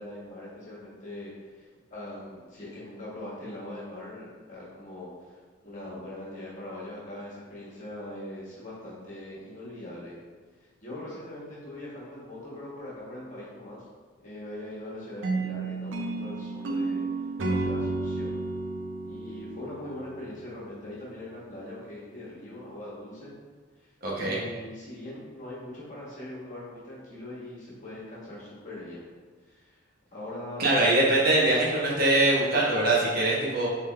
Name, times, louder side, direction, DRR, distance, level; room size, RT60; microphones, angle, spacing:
voice 1, 0.0-5.3 5.6-10.2 10.8-13.9 14.2-17.0 17.4-18.4 19.0-23.3 23.8-29.1 29.4-29.8 30.1-30.6, left 1 dB, 40° left, -8 dB, 1.4 m, -41 dB
sound 1, 15.2-20.4, right 3 dB, 80° right, 0.5 m, -31 dB
voice 2, 24.0-24.4 30.6-33.7, right 2 dB, 55° right, -5 dB, 1.0 m, -23 dB
3.9 x 3.5 x 3.2 m, 1.4 s
head